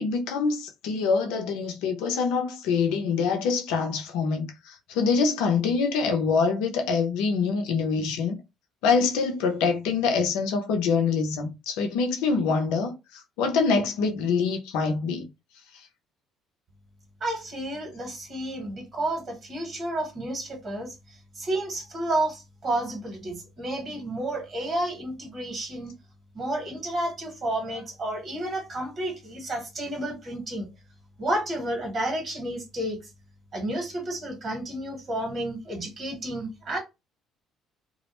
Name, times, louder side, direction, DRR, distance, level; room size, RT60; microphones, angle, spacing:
voice 1, 0.0-8.4 8.8-15.3, left 5 dB, 80° left, 0.6 m, -25 dB
voice 2, 17.2-25.9 26.3-30.7 31.2-33.0 33.5-36.8, right 1 dB, 50° right, 1.3 m, -31 dB
2.4 x 2.0 x 3.0 m
supercardioid pair, 65°, 0 cm